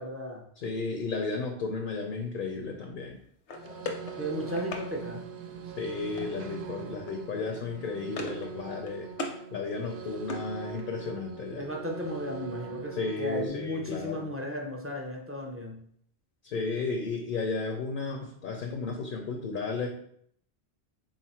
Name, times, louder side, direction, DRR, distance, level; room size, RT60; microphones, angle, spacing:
voice 1, 0.0-0.4 4.2-5.2 11.6-15.8, equal, 20° right, 0 dB, 0.4 m, -35 dB
voice 2, 0.6-3.2 5.8-9.1 9.5-11.6 13.0-14.3 16.4-19.9, left 4 dB, 60° left, 3 dB, 0.6 m, -33 dB
sound 1, 3.5-4.9 6.2-6.6 6.9-7.1 7.4-8.5 8.8-9.4 9.8-11.0, left 2 dB, 80° left, 0.9 m, -39 dB
sound 2, 3.5-13.5, right 7 dB, 60° right, 0.7 m, -42 dB
4.0 x 2.4 x 4.2 m, 0.66 s
omnidirectional pair, 1.1 m